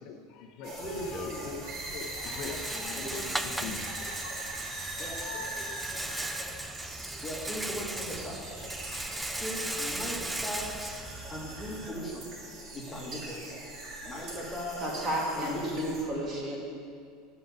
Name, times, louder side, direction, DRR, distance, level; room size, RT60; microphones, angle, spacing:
voice 1, 0.0-3.0 3.6-5.5, left 6 dB, 55° left, 4 dB, 0.8 m, -43 dB
sound 1, 0.6-16.0, right 2 dB, 50° right, 2.8 m, -41 dB
voice 2, 0.8-1.5 2.5-3.6 5.0-5.5 5.9-6.0 7.2-8.5 9.3-11.0 11.3-12.3 12.7-13.6 14.0-14.9 15.3-15.9, equal, 10° left, -4 dB, 2.3 m, -39 dB
Rattle, 0.8-11.9, right 1 dB, 5° right, 0.4 m, -38 dB
voice 3, 14.8-16.6, equal, 30° right, -3 dB, 2.5 m, -32 dB
11.0 x 5.4 x 6.7 m, 2.2 s
supercardioid pair, 120°, 0 cm